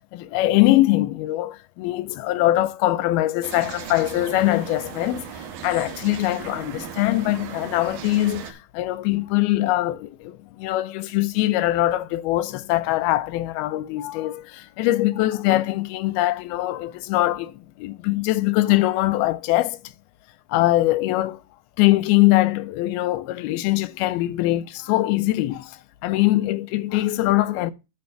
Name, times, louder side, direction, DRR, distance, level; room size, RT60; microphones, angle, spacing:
voice 1, 0.1-19.8 20.5-21.4 21.8-27.7, left 16 dB, 85° left, 2.6 m, -22 dB
sound 1, 3.4-8.5, right 8 dB, 75° right, 2.8 m, -37 dB
11.0 x 4.3 x 6.6 m
omnidirectional pair, 4.3 m